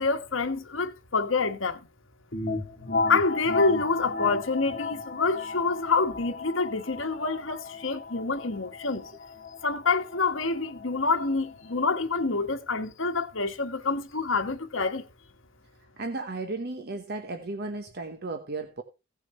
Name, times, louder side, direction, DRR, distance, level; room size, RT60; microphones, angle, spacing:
voice 1, 0.0-1.8 3.1-9.1 9.6-15.1, left 4 dB, 75° left, 1.4 m, -27 dB
sound 1, 2.3-11.9, left 3 dB, 50° left, 1.2 m, -34 dB
voice 2, 16.0-18.8, right 3 dB, 55° right, 1.0 m, -34 dB
16.0 x 6.4 x 4.2 m
head